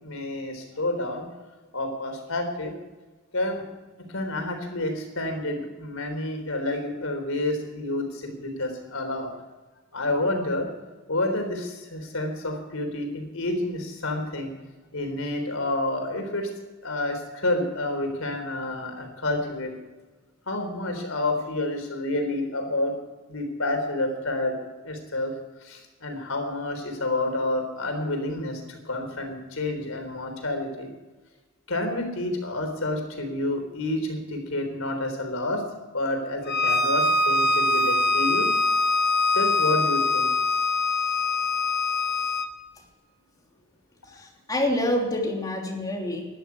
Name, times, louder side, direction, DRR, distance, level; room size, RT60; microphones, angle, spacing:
voice 1, 0.0-1.3 1.7-2.7 3.3-3.6 4.1-9.3 9.9-10.7 11.1-14.5 14.9-16.5 16.8-19.7 20.5-22.9 23.3-24.5 24.8-25.3 25.6-30.9 31.7-35.6 35.9-38.5 39.3-40.3, left 2 dB, 90° left, 5 dB, 3.8 m, -29 dB
Bowed string instrument, 36.5-42.5, left 2 dB, 55° left, 1.3 m, -23 dB
voice 2, 44.1-46.3, left 1 dB, 20° left, 0 dB, 3.2 m, -27 dB
13.0 x 11.5 x 9.5 m, 1.2 s
head